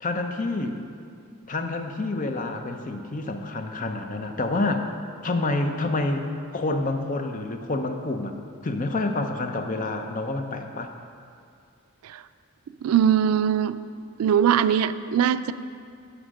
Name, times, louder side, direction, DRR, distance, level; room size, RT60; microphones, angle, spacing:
voice 1, 0.0-0.8 1.5-4.9 5.2-8.3 8.6-10.9, left 2 dB, 40° left, 5 dB, 0.6 m, -28 dB
voice 2, 12.8-13.8 14.2-15.5, right 8 dB, 90° right, 13 dB, 0.3 m, -21 dB
10.0 x 5.1 x 6.3 m, 2.3 s
head